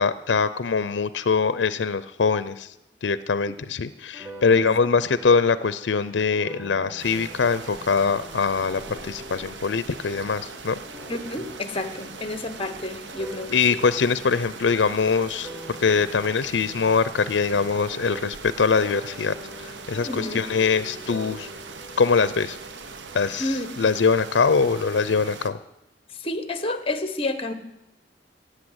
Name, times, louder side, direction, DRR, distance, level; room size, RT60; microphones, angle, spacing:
voice 1, 0.0-2.7 3.0-10.8 13.5-21.5 22.0-22.6 23.1-25.6, left 5 dB, 85° left, 15 dB, 0.5 m, -23 dB
sound 1, 4.1-18.6 18.8-23.3, equal, 10° right, 1.5 m, -45 dB
sound 2, 7.0-25.5, right 4 dB, 90° right, 1.0 m, -41 dB
voice 2, 11.1-13.8 20.1-20.4 23.4-23.7 26.2-27.5, left 2 dB, 30° left, 10 dB, 1.1 m, -30 dB
16.5 x 8.2 x 8.0 m, 0.90 s
head